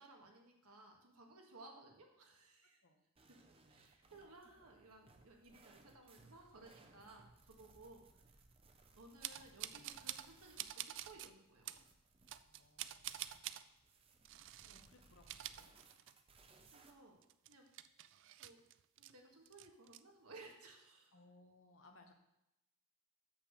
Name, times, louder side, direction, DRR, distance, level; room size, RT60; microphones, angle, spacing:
voice 1, 0.0-2.8 3.7-8.0 8.9-11.9 16.7-17.7 18.4-18.6 19.0-21.1, right 2 dB, 80° right, 1 dB, 1.6 m, -59 dB
sound 1, 3.2-16.9, right 3 dB, 25° right, 0.7 m, -66 dB
sound 2, 9.2-10.3 10.6-11.3 11.7-11.8 12.3-13.6 14.2-14.9 15.2-16.4 16.7-16.8 17.2-19.1 19.5-20.0, right 13 dB, 55° right, 0.3 m, -47 dB
voice 2, 12.4-13.8 14.6-15.7 21.1-22.1, left 2 dB, 60° left, 4 dB, 1.2 m, -66 dB
6.5 x 5.8 x 6.6 m, 0.89 s
head